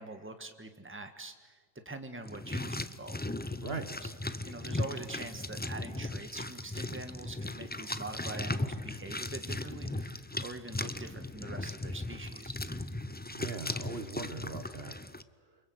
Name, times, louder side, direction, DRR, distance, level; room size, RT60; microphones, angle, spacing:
voice 1, 0.0-1.6 1.8-3.2 4.0-4.1 4.4-12.6, right 2 dB, 10° right, 6 dB, 1.6 m, -44 dB
sound 1, 2.2-15.2, left 2 dB, 15° left, 0.3 m, -37 dB
voice 2, 3.6-4.0 13.3-14.9, right 4 dB, 50° right, 8 dB, 1.4 m, -40 dB
29.0 x 25.0 x 8.1 m, 1.5 s
omnidirectional pair, 1.4 m